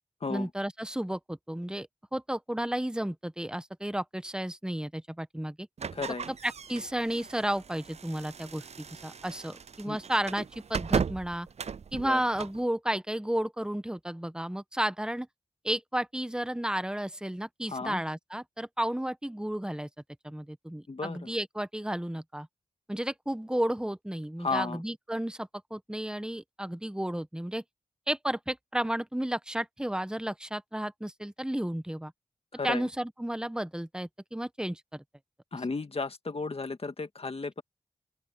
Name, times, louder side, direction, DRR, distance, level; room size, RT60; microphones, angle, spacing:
voice 1, 0.3-1.9 2.1-5.7 6.4-11.5 11.9-15.3 15.6-19.9 20.2-22.5 22.9-27.6 28.1-32.1 32.6-35.0, right 1 dB, 5° right, 1.1 m, -32 dB
sound 1, 5.8-12.6, right 6 dB, 60° right, 0.6 m, -36 dB
voice 2, 5.9-6.3 9.8-10.0 12.0-12.2 17.7-18.0 20.9-21.3 24.4-24.8 32.5-32.9 35.5-37.6, left 4 dB, 50° left, 2.0 m, -34 dB
open air
cardioid pair, 50°, 12 cm